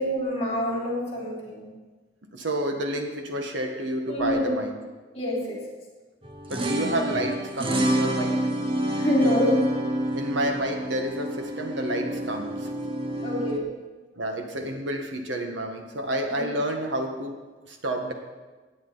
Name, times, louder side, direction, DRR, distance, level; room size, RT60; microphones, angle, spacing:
voice 1, 0.0-1.7 4.1-4.6 5.1-5.6 9.0-9.7 13.2-13.7 16.3-16.4, left 1 dB, 35° left, -5 dB, 3.1 m, -26 dB
voice 2, 2.3-4.8 6.5-8.4 10.1-12.7 14.2-17.4 17.7-18.1, right 1 dB, 85° right, 4 dB, 1.6 m, -29 dB
sound 1, 6.2-13.6, right 1 dB, 30° right, 0.9 m, -28 dB
16.5 x 9.1 x 4.0 m, 1.3 s
head